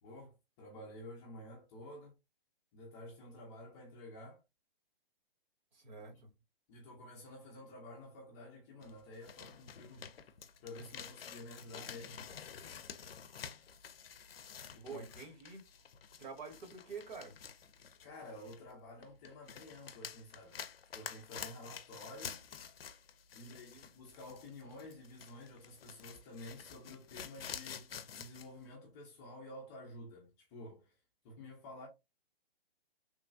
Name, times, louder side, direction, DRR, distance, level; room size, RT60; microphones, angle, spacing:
voice 1, 0.0-2.1 2.7-4.4 6.1-6.2 6.7-10.1 10.6-12.2 14.7-15.0 18.0-20.7 20.9-22.5 23.3-31.0 31.2-31.9, left 1 dB, 20° left, 0.6 m, -51 dB
voice 2, 5.7-6.3 14.8-15.6 16.2-17.4 23.3-23.9, right 5 dB, 50° right, 1.2 m, -48 dB
sound 1, 8.8-18.7 19.0-28.5, left 7 dB, 75° left, 0.5 m, -49 dB
3.1 x 2.2 x 2.4 m
hypercardioid pair, 140°, 29 cm